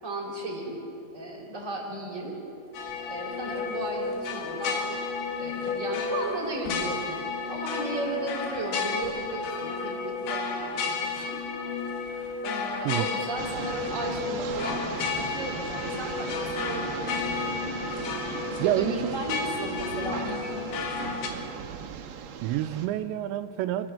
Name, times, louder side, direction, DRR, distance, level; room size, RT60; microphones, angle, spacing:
voice 1, 0.0-0.8 1.1-2.3 3.1-7.1 7.5-11.4 12.4-14.9 15.2-17.1 18.6-21.2, right 2 dB, 20° right, -2 dB, 4.2 m, -35 dB
sound 1, 2.7-21.3, left 5 dB, 80° left, 4.0 m, -32 dB
sound 2, 13.4-22.9, right 7 dB, 65° right, 2.5 m, -38 dB
voice 2, 18.6-19.1 22.4-23.9, right 13 dB, 85° right, 9 dB, 2.9 m, -28 dB
28.5 x 14.0 x 7.6 m, 2.8 s
omnidirectional pair, 5.0 m